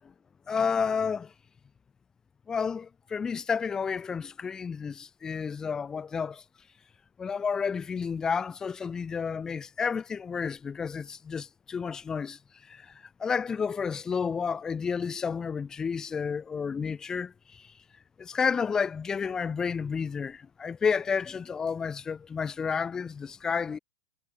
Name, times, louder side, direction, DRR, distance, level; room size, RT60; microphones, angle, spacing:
voice 1, 0.5-1.3 2.5-6.4 7.2-12.4 12.7-12.9 13.2-17.7 18.2-23.8, left 6 dB, 20° left, 2.5 m, -31 dB
hypercardioid pair, 105°, 3 cm